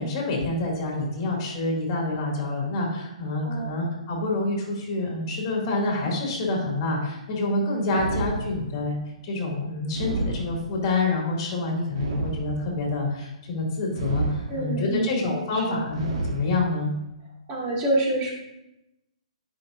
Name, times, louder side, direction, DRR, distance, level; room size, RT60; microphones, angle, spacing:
voice 1, 0.0-9.0 9.2-17.0, left 2 dB, 35° left, -1 dB, 2.5 m, -27 dB
sound 1, 7.9-9.0 9.9-11.0 11.9-13.0 13.9-14.9 15.9-16.9, right 3 dB, 50° right, 1.4 m, -31 dB
voice 2, 14.5-15.2 15.5-15.8 17.5-18.3, right 1 dB, 30° right, -3 dB, 2.2 m, -27 dB
10.0 x 5.2 x 2.6 m, 0.88 s
hypercardioid pair, 135°, 4 cm